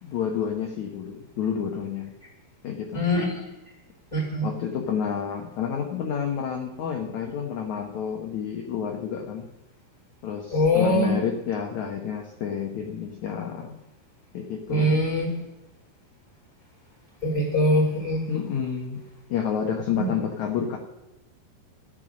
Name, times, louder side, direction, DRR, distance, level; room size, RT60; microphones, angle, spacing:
voice 1, 0.0-2.1 2.6-3.0 4.4-9.5 10.2-13.8 14.3-15.1 18.3-19.0 19.3-20.8, left 7 dB, 65° left, 3 dB, 1.9 m, -29 dB
voice 2, 2.9-3.4 4.1-4.5 10.5-11.1 14.7-15.3 17.2-18.3 19.9-20.1, left 1 dB, 15° right, -1 dB, 2.9 m, -23 dB
13.0 x 10.5 x 6.4 m, 0.99 s
omnidirectional pair, 4.8 m